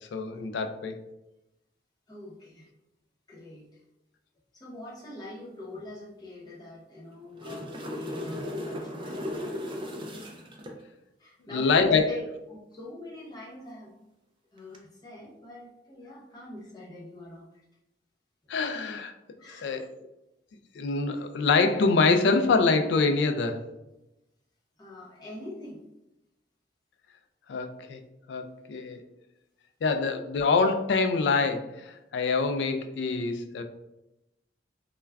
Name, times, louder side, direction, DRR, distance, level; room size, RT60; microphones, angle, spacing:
voice 1, 0.1-1.0 11.5-12.1 18.5-19.1 19.5-19.8 20.8-23.6 27.5-28.0 28.3-29.0 29.8-33.6, left 4 dB, 65° left, 7 dB, 0.3 m, -25 dB
voice 2, 2.1-2.7 3.3-3.8 4.5-9.2 11.2-13.9 14.5-17.6 19.4-19.9 24.8-25.9, left 1 dB, 20° left, -5 dB, 0.7 m, -44 dB
sound 1, 7.1-10.8 14.6-14.8, left 1 dB, 25° right, 0.3 m, -36 dB
2.3 x 2.2 x 3.3 m, 0.91 s
head